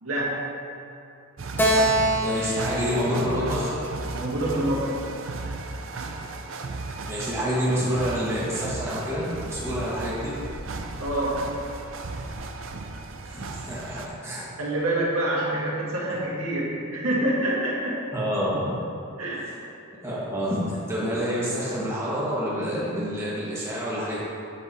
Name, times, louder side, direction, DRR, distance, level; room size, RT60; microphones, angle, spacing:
voice 1, 0.0-0.5 4.1-5.0 11.0-11.4 14.6-18.0 19.2-19.4, right 1 dB, 80° right, -5 dB, 1.7 m, -26 dB
sound 1, 1.4-14.1, right 3 dB, 60° right, 0.5 m, -35 dB
Keyboard (musical), 1.6-5.0, right 1 dB, 10° left, 0.7 m, -26 dB
voice 2, 2.2-3.7 6.7-10.3 13.2-14.5 18.1-18.7 20.0-24.2, equal, 15° right, -8 dB, 1.6 m, -28 dB
7.5 x 6.2 x 4.3 m, 2.7 s
head